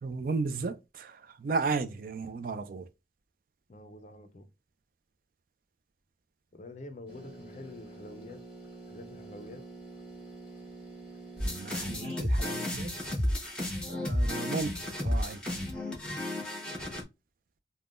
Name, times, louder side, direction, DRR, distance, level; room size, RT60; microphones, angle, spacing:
voice 1, 0.0-2.9 11.4-13.0 13.9-15.4, right 4 dB, 50° right, 0.3 m, -34 dB
voice 2, 3.7-4.5 6.5-8.4 8.9-9.6, left 2 dB, 40° left, 0.4 m, -47 dB
sound 1, 7.1-12.3, right 3 dB, 10° right, 1.4 m, -47 dB
sound 2, 11.4-17.0, left 1 dB, 5° left, 0.9 m, -32 dB
3.5 x 2.1 x 2.4 m
head